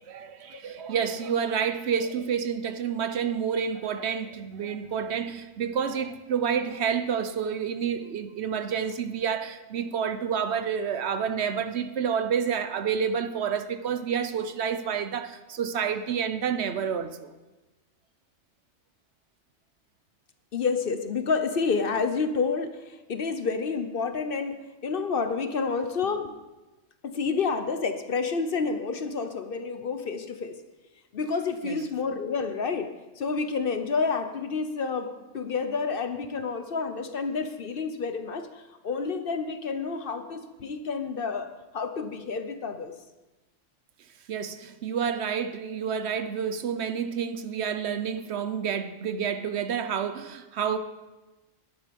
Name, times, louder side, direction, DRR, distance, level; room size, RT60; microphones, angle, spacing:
voice 1, 0.0-17.3 31.6-31.8 44.3-50.8, right 7 dB, 65° right, 1.0 m, -29 dB
voice 2, 20.5-26.4 27.0-30.6 31.1-32.9 33.2-42.9, left 5 dB, 50° left, 0.9 m, -29 dB
11.0 x 10.5 x 5.2 m
omnidirectional pair, 1.3 m